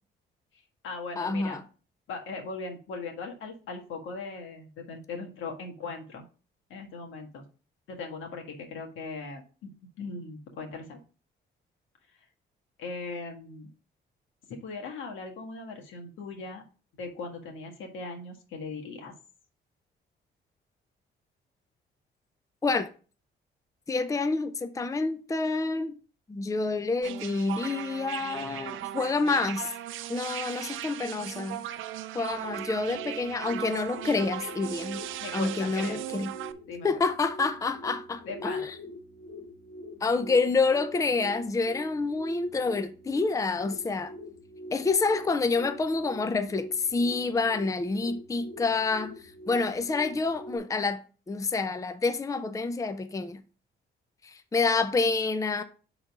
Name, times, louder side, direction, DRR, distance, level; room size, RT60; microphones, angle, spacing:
voice 1, 0.5-1.6 2.1-6.2 6.7-7.4 7.9-11.0 12.8-13.7 14.5-16.6 17.0-19.1 35.2-36.0 36.7-36.9 38.2-38.7, left 4 dB, 80° left, 1.6 m, -39 dB
voice 2, 1.2-1.6 22.6-22.9 23.9-25.9 26.3-29.7 30.1-31.6 32.1-35.0 35.3-36.3 36.8-38.7 40.0-44.1 44.7-49.1 49.5-51.0 51.3-53.4 54.2-55.6, left 3 dB, 15° left, 0.5 m, -28 dB
sound 1, 27.0-36.5, right 13 dB, 85° right, 0.5 m, -38 dB
sound 2, 32.2-50.6, equal, 45° left, 3.0 m, -45 dB
5.9 x 3.9 x 5.2 m
cardioid pair, 90°, 20 cm